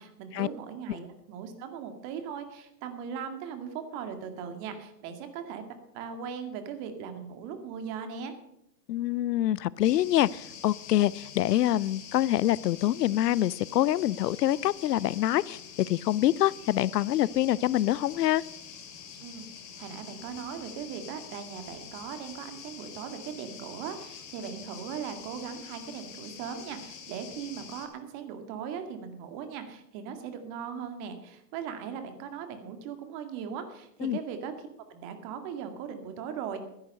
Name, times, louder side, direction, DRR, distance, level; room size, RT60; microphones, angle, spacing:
voice 1, 0.0-5.6 5.9-8.3 19.2-19.5 19.8-36.6, right 7 dB, 40° right, 8 dB, 2.1 m, -39 dB
voice 2, 8.9-15.6 15.9-18.4 34.0-34.2, left 13 dB, 75° left, 23 dB, 0.6 m, -25 dB
sound 1, 9.8-27.9, left 7 dB, 40° left, 2.5 m, -46 dB
12.5 x 10.5 x 6.6 m, 0.80 s
hypercardioid pair, 120°, 48 cm